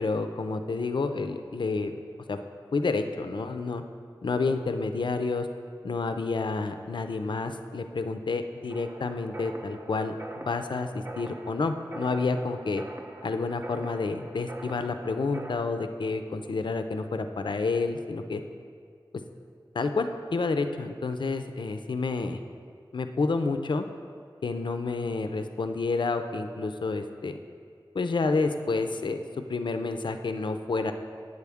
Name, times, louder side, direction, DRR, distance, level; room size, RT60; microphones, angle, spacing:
voice 1, 0.0-1.9 2.3-2.4 2.7-3.8 4.2-5.5 5.8-12.8 13.2-18.4 19.7-22.4 22.9-23.8 24.4-27.4 27.9-29.2 29.5-30.9, left 3 dB, 60° left, 8 dB, 0.4 m, -29 dB
sound 1, 8.7-15.5, right 2 dB, 25° right, 0.5 m, -44 dB
8.2 x 6.4 x 3.5 m, 2.1 s
wide cardioid pair, 45°, 9 cm